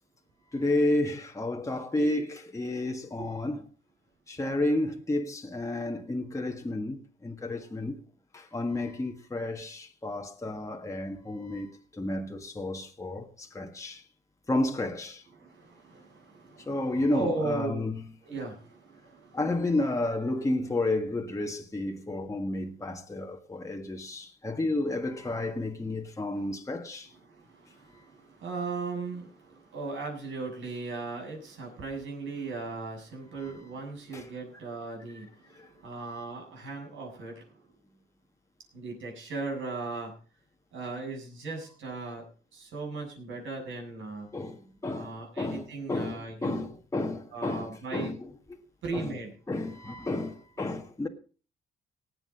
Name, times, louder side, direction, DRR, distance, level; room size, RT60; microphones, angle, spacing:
voice 1, 0.5-3.6 4.3-8.0 8.3-14.0 14.5-15.2 16.7-18.0 19.3-27.1 33.4-33.5 34.1-34.3 35.1-35.2 35.6-35.7 44.3-45.1 45.4-48.3 48.9-49.2 49.5-51.1, left 2 dB, 15° left, 1.7 m, -31 dB
voice 2, 15.4-16.8 17.1-17.9 18.2-19.4 27.2-37.4 38.7-40.1 40.7-42.3 42.5-44.3 44.9-46.7 47.3-48.1 48.8-49.3, right 3 dB, 75° right, 7.3 m, -37 dB
18.5 x 8.0 x 5.3 m
cardioid pair, 90°, 20 cm